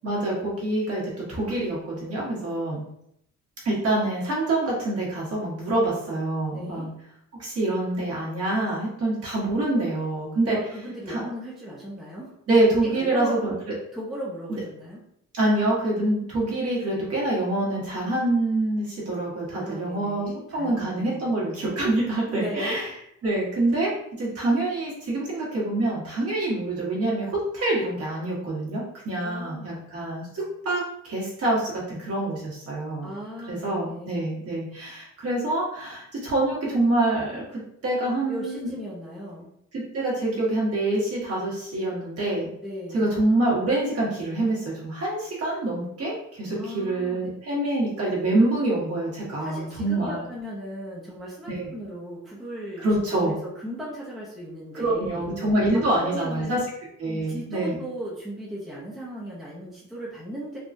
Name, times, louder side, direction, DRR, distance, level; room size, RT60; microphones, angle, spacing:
voice 1, 0.0-2.8 3.6-6.9 7.4-10.6 11.1-11.2 12.5-13.5 14.5-14.6 15.3-22.8 23.2-23.9 24.2-33.1 33.5-38.8 39.7-42.5 42.9-50.2 51.5-51.7 52.8-53.3 54.7-56.6 57.0-57.8, right 2 dB, 50° right, -5 dB, 1.3 m, -26 dB
voice 2, 6.5-6.9 10.5-12.3 13.0-13.4 13.9-15.0 19.5-21.3 22.3-22.8 29.2-29.9 33.0-34.3 38.3-39.5 42.6-43.1 46.5-47.3 49.4-52.9 53.1-55.3 55.9-56.6 57.3-60.6, equal, ahead, -6 dB, 0.5 m, -36 dB
3.5 x 2.3 x 2.5 m, 0.74 s
wide cardioid pair, 165°, 32 cm